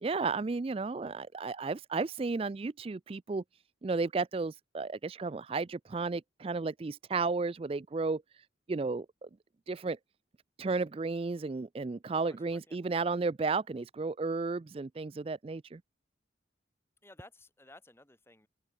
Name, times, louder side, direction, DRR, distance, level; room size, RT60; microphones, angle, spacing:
voice 1, 0.0-3.4 3.8-8.2 8.7-9.3 9.7-10.0 10.6-15.8, right 4 dB, 30° right, 0.4 m, -33 dB
voice 2, 12.2-12.8 17.0-18.5, left 1 dB, 15° left, 2.7 m, -55 dB
open air
head